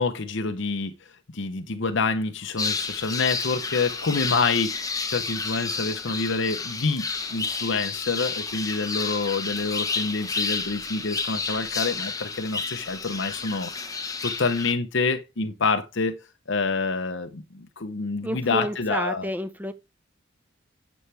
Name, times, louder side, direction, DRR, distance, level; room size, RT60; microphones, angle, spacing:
voice 1, 0.0-13.7 14.2-16.2 16.5-19.3, left 4 dB, 60° left, 0.9 m, -27 dB
sound 1, 2.6-14.7, left 4 dB, 15° left, 1.1 m, -31 dB
voice 2, 18.2-19.7, equal, 10° right, 1.1 m, -29 dB
11.0 x 7.3 x 3.4 m
head